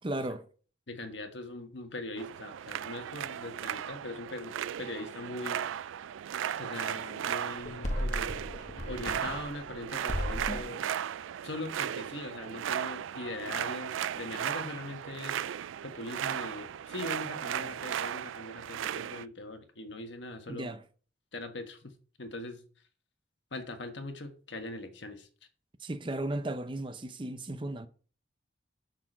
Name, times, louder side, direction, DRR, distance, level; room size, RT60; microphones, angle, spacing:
voice 1, 0.0-0.5 20.5-20.8 25.8-27.9, right 1 dB, 25° right, 0.6 m, -35 dB
voice 2, 0.9-5.6 6.6-8.6 8.9-10.9 11.4-15.4 15.8-20.7 21.3-21.9 22.2-22.6 23.5-25.3, left 2 dB, 65° left, 1.4 m, -41 dB
sound 1, 2.2-19.2, right 9 dB, 85° right, 0.3 m, -36 dB
sound 2, 7.6-9.8 10.1-10.8, left 1 dB, 40° left, 1.2 m, -35 dB
6.6 x 6.0 x 6.1 m
head